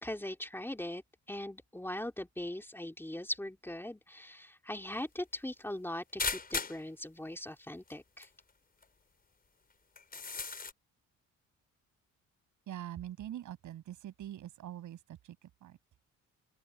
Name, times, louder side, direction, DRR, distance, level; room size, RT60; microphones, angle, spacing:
voice 1, 0.0-8.3, left 1 dB, 5° left, 3.1 m, -40 dB
sound 1, 6.2-6.9 7.9-8.0 8.2-8.3 8.8-8.9 10.0-10.7, left 4 dB, 30° left, 5.2 m, -36 dB
voice 2, 12.7-15.8, right 12 dB, 75° right, 7.2 m, -44 dB
open air
cardioid pair, 90°, 30 cm